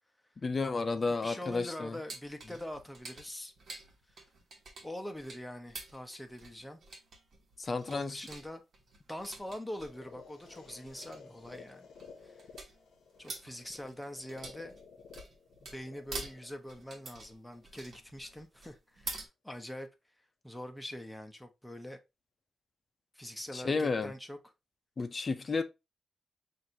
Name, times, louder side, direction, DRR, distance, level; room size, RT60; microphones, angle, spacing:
voice 1, 0.4-2.0 7.6-8.2 23.5-24.1 25.0-25.6, left 4 dB, 40° left, 0.5 m, -32 dB
voice 2, 1.1-3.5 4.1-4.3 4.8-6.8 7.9-8.6 9.1-11.9 12.2-12.4 13.2-14.8 15.6-19.9 20.4-22.0 23.1-24.4, left 1 dB, 5° left, 0.8 m, -44 dB
sound 1, 2.1-19.3, right 3 dB, 60° right, 1.2 m, -48 dB
sound 2, 9.8-17.8, left 5 dB, 85° left, 0.7 m, -54 dB
6.2 x 2.6 x 2.8 m
cardioid pair, 90°, 0 cm